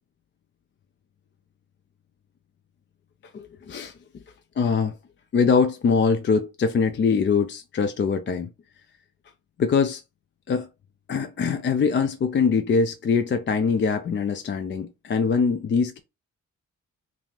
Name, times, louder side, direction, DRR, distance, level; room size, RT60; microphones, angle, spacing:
voice 1, 3.3-3.9 4.6-5.0 5.3-8.5 9.6-10.0 10.5-10.7 11.1-16.0, left 5 dB, 30° left, 0.4 m, -23 dB
2.6 x 2.3 x 3.2 m
hypercardioid pair, 40°, 37 cm